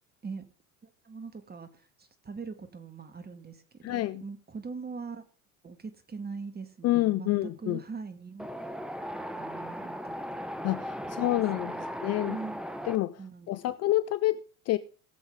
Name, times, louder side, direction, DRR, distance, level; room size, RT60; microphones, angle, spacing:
voice 1, 0.8-5.2 5.6-8.7 9.4-10.4 11.1-11.3 11.5-11.9 12.2-12.7 13.2-13.6, right 4 dB, 20° right, 1.8 m, -42 dB
voice 2, 3.8-4.2 6.8-7.8 10.6-11.7 12.0-12.4 12.9-13.2 13.5-14.8, left 16 dB, 35° left, 0.5 m, -28 dB
Wind, 8.4-13.0, equal, ahead, 0.8 m, -37 dB
18.5 x 7.1 x 3.6 m
hypercardioid pair, 70°, 45 cm